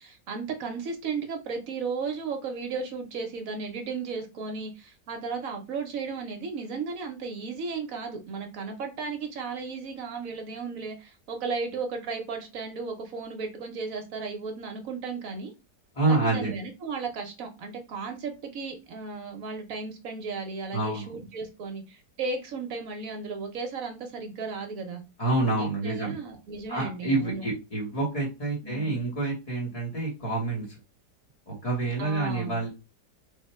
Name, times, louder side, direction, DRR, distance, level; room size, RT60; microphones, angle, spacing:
voice 1, 0.0-15.5 16.1-25.0 25.6-27.4 28.6-29.0 32.0-32.6, right 4 dB, 60° right, 4 dB, 1.0 m, -35 dB
voice 2, 15.9-16.5 20.7-21.1 25.2-26.2 26.7-30.7 31.5-32.7, right 2 dB, 30° left, -4 dB, 0.8 m, -27 dB
3.5 x 2.1 x 4.1 m, 0.27 s
omnidirectional pair, 1.9 m